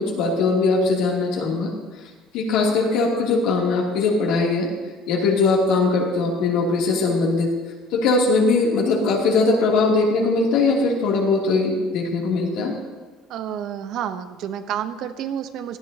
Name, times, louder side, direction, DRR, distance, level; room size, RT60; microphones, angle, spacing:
voice 1, 0.0-1.7 2.3-4.7 5.1-7.5 7.9-12.7, left 3 dB, 75° left, -2 dB, 2.8 m, -20 dB
voice 2, 13.3-15.8, right 9 dB, 65° right, 10 dB, 0.8 m, -29 dB
16.5 x 11.5 x 2.8 m, 1.3 s
supercardioid pair, 100°, 0 cm